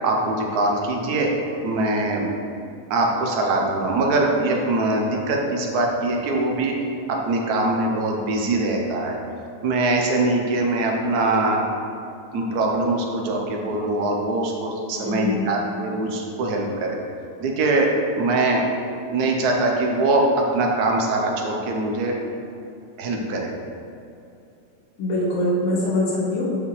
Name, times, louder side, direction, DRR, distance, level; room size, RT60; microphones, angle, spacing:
voice 1, 0.0-1.3 1.6-2.3 2.9-6.7 7.1-9.2 9.6-11.6 12.3-17.0 17.4-17.9 18.2-18.6 19.1-20.2 20.5-22.1 23.0-23.5, right 2 dB, 65° right, 0 dB, 1.0 m, -22 dB
voice 2, 14.9-15.4 25.0-26.4, left 1 dB, 90° left, -6 dB, 2.3 m, -23 dB
6.3 x 5.8 x 3.2 m, 2.7 s
omnidirectional pair, 2.4 m